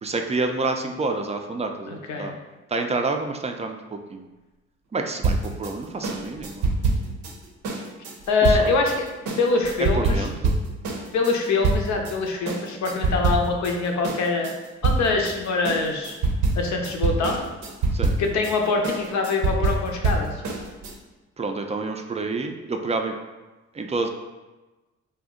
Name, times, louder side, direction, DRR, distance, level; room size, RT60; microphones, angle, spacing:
voice 1, 0.0-2.3 2.7-4.3 4.9-6.7 8.4-8.8 9.8-10.5 17.9-18.2 21.4-23.1 23.7-24.1, right 3 dB, 20° right, 4 dB, 0.3 m, -28 dB
voice 2, 1.9-2.3 8.3-9.1 9.4-10.2 11.1-14.5 14.8-16.2 16.5-17.4 18.2-20.4, left 3 dB, 65° left, 2 dB, 0.6 m, -24 dB
sound 1, 5.2-12.2 12.5-13.8 14.0-20.9, right 3 dB, 75° right, 0.6 m, -25 dB
2.6 x 2.1 x 3.6 m, 1.1 s
supercardioid pair, 55°, 30 cm